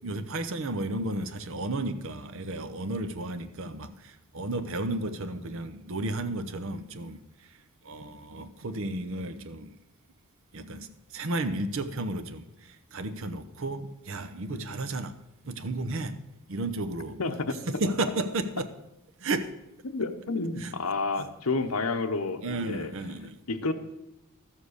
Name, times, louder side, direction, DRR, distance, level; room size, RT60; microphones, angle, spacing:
voice 1, 0.0-9.8 10.5-15.2 15.4-16.2 16.5-17.2 17.6-18.7 19.2-19.5 20.6-20.7 22.4-23.4, right 2 dB, 60° right, 0.8 m, -33 dB
voice 2, 17.2-17.6 19.8-22.9 23.5-23.7, left 3 dB, 80° left, 0.9 m, -30 dB
13.0 x 7.4 x 6.5 m
head